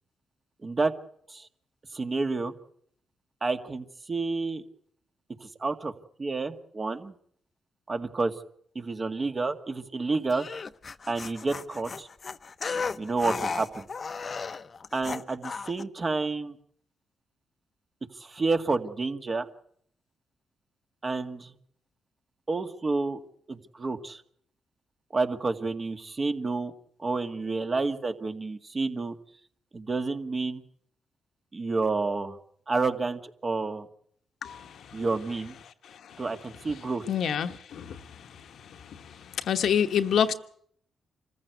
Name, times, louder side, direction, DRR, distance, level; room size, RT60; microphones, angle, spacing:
voice 1, 0.6-0.9 1.3-1.5 1.9-2.5 3.4-4.6 5.4-5.9 6.2-7.1 7.9-8.3 8.8-10.5 11.1-12.1 13.0-13.9 14.3-14.4 14.9-16.6 18.2-19.5 21.0-21.5 22.5-23.2 23.5-24.2 25.1-26.7 27.0-29.2 29.7-30.6 31.5-32.4 32.7-33.9 34.9-35.5 36.2-37.0, right 3 dB, 40° right, 2.0 m, -29 dB
sound 1, 10.3-15.8, left 5 dB, 45° left, 0.8 m, -35 dB
voice 2, 37.1-38.0 39.5-40.3, left 8 dB, 70° left, 1.2 m, -26 dB
26.0 x 15.0 x 8.1 m
supercardioid pair, 50°, 0 cm